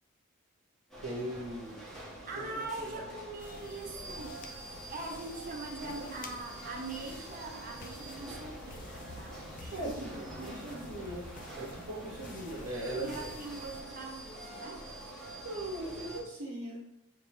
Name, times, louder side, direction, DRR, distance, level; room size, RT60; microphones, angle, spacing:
sound 1, 0.9-16.2, right 1 dB, ahead, 0.9 m, -46 dB
voice 1, 1.0-1.8 2.4-2.6 2.9-3.0 5.8-6.1 9.7-13.3 15.4-16.9, right 1 dB, 80° right, -4 dB, 0.7 m, -40 dB
voice 2, 2.3-4.4 4.9-10.7 13.0-14.9, right 2 dB, 40° right, 1 dB, 0.6 m, -42 dB
sound 2, 3.4-13.8, left 2 dB, 40° left, 0.4 m, -50 dB
3.2 x 2.9 x 3.5 m, 0.81 s
head